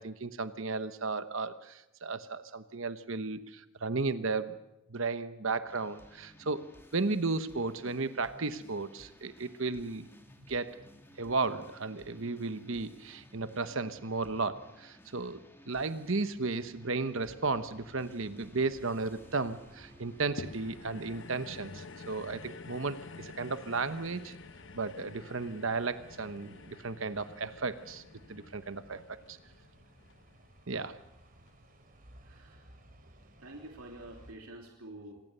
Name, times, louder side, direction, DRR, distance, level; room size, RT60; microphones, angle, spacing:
voice 1, 0.0-4.6 4.9-6.6 6.9-10.1 10.5-10.8 11.2-24.3 24.7-28.0 28.3-29.4 30.7-31.0, right 3 dB, 60° right, 12 dB, 1.1 m, -34 dB
sound 1, 5.7-21.7, equal, 10° left, 2.7 m, -57 dB
sound 2, 17.2-34.3, right 1 dB, 40° right, 3.8 m, -59 dB
sound 3, 20.4-30.9 31.5-31.6, left 3 dB, 55° left, 1.0 m, -49 dB
voice 2, 32.2-32.7 33.4-35.2, right 1 dB, 80° right, 2 dB, 3.1 m, -48 dB
26.5 x 20.0 x 6.8 m, 0.88 s
head